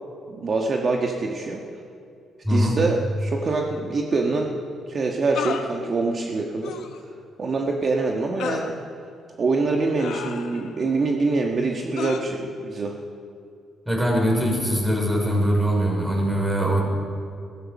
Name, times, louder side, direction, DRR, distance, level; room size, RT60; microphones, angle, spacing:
voice 1, 0.3-1.6 2.5-4.6 4.9-6.8 7.4-8.7 9.4-12.9, right 3 dB, 45° right, 1 dB, 1.4 m, -24 dB
voice 2, 2.4-2.8 13.9-16.8, equal, 10° right, -1 dB, 5.2 m, -22 dB
sound 1, 3.5-3.6 5.3-5.7 6.6-7.0 8.4-8.7 10.0-10.8 12.0-12.2, left 7 dB, 80° left, 1.1 m, -32 dB
16.5 x 14.5 x 5.4 m, 2.4 s
cardioid pair, 90°, 0 cm